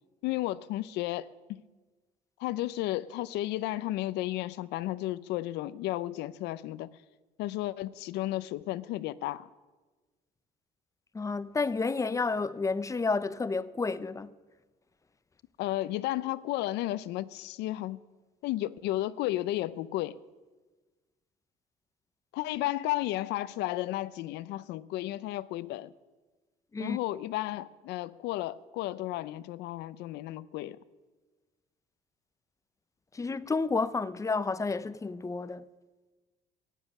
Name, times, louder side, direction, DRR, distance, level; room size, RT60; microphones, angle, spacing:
voice 1, 0.2-1.6 2.4-6.9 7.4-9.5 15.6-18.0 18.4-20.2 22.3-25.9 26.8-30.8, left 15 dB, 85° left, 0.6 m, -33 dB
voice 2, 11.1-14.3 26.7-27.0 33.1-35.6, left 4 dB, 20° left, 0.6 m, -30 dB
15.5 x 10.5 x 8.4 m
cardioid pair, 110°, 17 cm